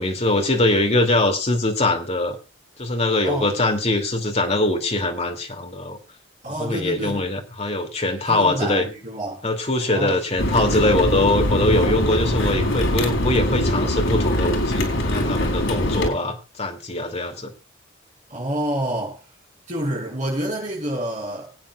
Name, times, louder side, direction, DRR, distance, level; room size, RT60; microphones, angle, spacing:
voice 1, 0.0-2.4 2.8-6.0 6.6-8.9 9.4-17.5, left 2 dB, 35° left, 2.6 m, -22 dB
voice 2, 3.2-3.5 6.4-7.3 8.3-9.5 9.9-10.2 18.3-19.2 19.7-21.5, right 1 dB, 40° right, 6.2 m, -28 dB
sound 1, 10.4-16.1, left 1 dB, 75° left, 4.1 m, -22 dB
23.5 x 9.1 x 2.4 m
head